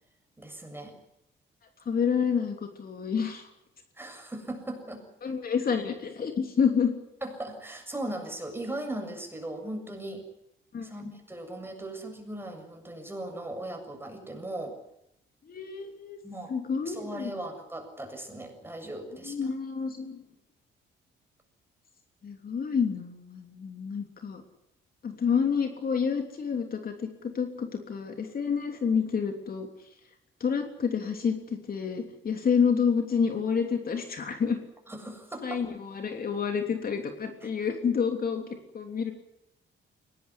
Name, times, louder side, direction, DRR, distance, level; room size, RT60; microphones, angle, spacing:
voice 1, 0.4-1.0 3.9-5.1 7.2-10.3 10.8-14.8 16.2-16.5 16.9-19.5 34.9-35.6 37.4-37.5, right 1 dB, 10° right, 4 dB, 7.4 m, -38 dB
voice 2, 1.8-3.5 5.2-6.9 10.7-10.9 15.5-16.2 16.5-17.3 19.3-20.2 22.2-24.4 25.0-29.7 30.4-34.6 35.4-38.4 38.7-39.1, left 6 dB, 50° left, 5 dB, 3.3 m, -28 dB
22.0 x 18.5 x 9.9 m, 0.81 s
cardioid pair, 90°, 20 cm